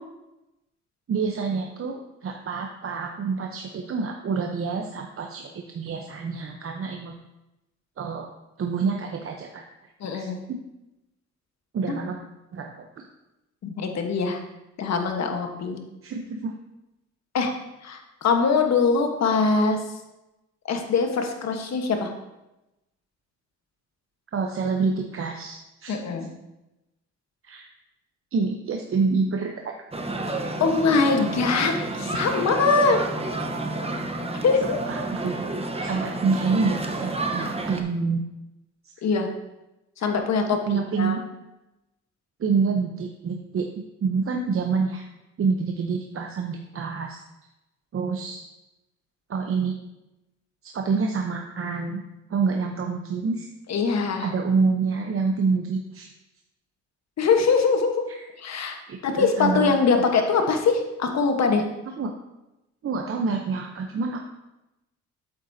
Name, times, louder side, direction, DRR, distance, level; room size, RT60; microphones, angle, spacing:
voice 1, 1.1-7.2 8.0-8.3 8.6-9.6 10.1-10.6 11.7-12.2 12.5-13.0 16.0-16.5 24.3-26.0 27.4-27.7 28.3-29.7 34.6-35.4 35.8-38.2 38.8-38.9 40.0-40.1 40.5-41.2 42.4-45.0 45.4-47.2 47.9-48.4 49.3-49.7 50.6-52.0 52.3-53.5 54.2-56.1 58.1-58.3 58.9-59.7 62.0-62.1 62.8-64.2, right 4 dB, 45° right, 2 dB, 0.8 m, -27 dB
voice 2, 10.0-10.4 13.6-14.4 14.8-15.8 17.3-17.5 17.8-19.8 20.7-22.1 25.9-26.3 30.2-33.0 34.4-34.8 39.0-39.3 40.0-41.2 53.7-54.3 57.2-57.9 58.4-61.6, left 4 dB, 65° left, 5 dB, 1.3 m, -23 dB
sound 1, 29.9-37.8, right 2 dB, 20° right, 1.0 m, -30 dB
8.2 x 7.9 x 2.8 m, 0.95 s
cardioid pair, 80°, 30 cm